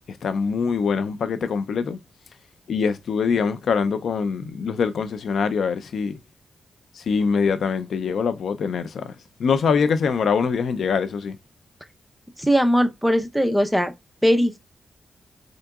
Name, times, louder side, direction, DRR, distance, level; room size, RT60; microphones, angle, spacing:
voice 1, 0.1-2.0 2.7-6.2 6.9-9.1 9.4-11.4, left 5 dB, 75° left, 0.4 m, -23 dB
voice 2, 12.4-13.9 14.2-14.6, equal, ahead, 0.6 m, -19 dB
3.8 x 3.5 x 2.3 m
cardioid pair, 90°, 0 cm